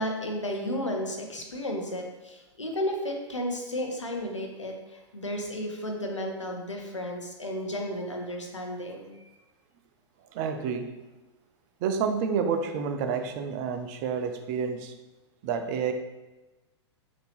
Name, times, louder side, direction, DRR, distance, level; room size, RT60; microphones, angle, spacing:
voice 1, 0.0-9.3, equal, 90° left, 2 dB, 0.7 m, -33 dB
voice 2, 10.3-11.0 11.8-14.9 15.4-15.9, right 6 dB, 40° right, 7 dB, 0.4 m, -29 dB
3.9 x 2.7 x 3.4 m, 1.1 s
figure-of-eight pair, 105°, 15 cm